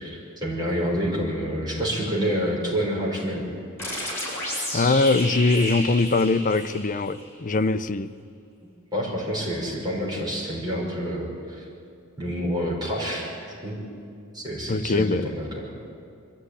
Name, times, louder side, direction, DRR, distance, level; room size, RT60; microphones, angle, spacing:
voice 1, 0.0-3.4 8.9-11.7 12.2-13.8 14.3-15.7, equal, 20° right, 5.8 m, -28 dB
sound 1, 3.8-7.3, left 1 dB, 10° left, 7.8 m, -32 dB
voice 2, 4.7-8.1 14.7-15.3, left 3 dB, 40° left, 0.6 m, -22 dB
22.5 x 14.0 x 9.9 m
head